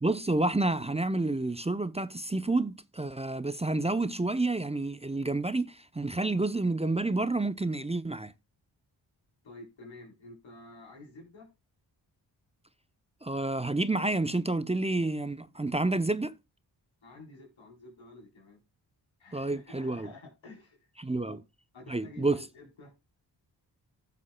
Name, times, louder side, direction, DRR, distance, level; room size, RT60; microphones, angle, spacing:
voice 1, 0.0-8.3 13.2-16.3 19.3-20.1 21.0-21.4 21.9-22.4, right 2 dB, 15° right, 0.6 m, -29 dB
voice 2, 9.4-11.5 17.0-18.6 19.2-20.9 21.2-21.4 21.7-22.9, left 2 dB, 90° left, 3.8 m, -50 dB
14.5 x 7.0 x 2.2 m
cardioid pair, 50°, 45 cm